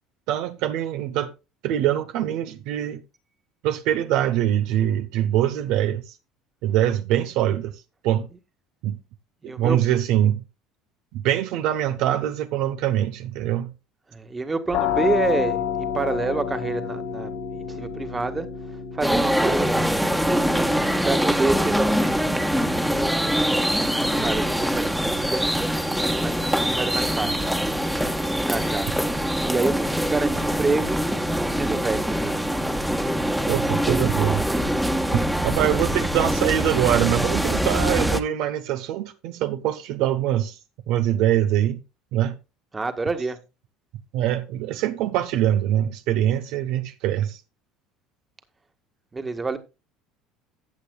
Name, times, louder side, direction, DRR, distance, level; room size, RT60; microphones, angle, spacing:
voice 1, 0.3-1.3 1.6-3.0 3.6-6.1 6.6-7.7 8.0-8.3 8.8-9.0 9.6-10.4 11.1-13.7 33.5-34.4 35.1-40.6 40.9-41.8 42.1-42.3 44.1-47.4, right 12 dB, 70° right, 0.9 m, -23 dB
voice 2, 9.4-9.8 14.1-18.5 18.9-20.5 21.0-23.0 23.7-25.5 25.7-26.4 26.7-27.7 28.2-28.9 29.5-31.0 31.5-32.5 42.7-43.4 49.1-49.6, right 3 dB, 20° right, 1.7 m, -28 dB
sound 1, 14.7-26.2, left 8 dB, 75° left, 2.5 m, -32 dB
sound 2, 19.0-38.2, equal, 5° right, 1.4 m, -23 dB
14.5 x 8.5 x 2.4 m
hypercardioid pair, 80°, 0 cm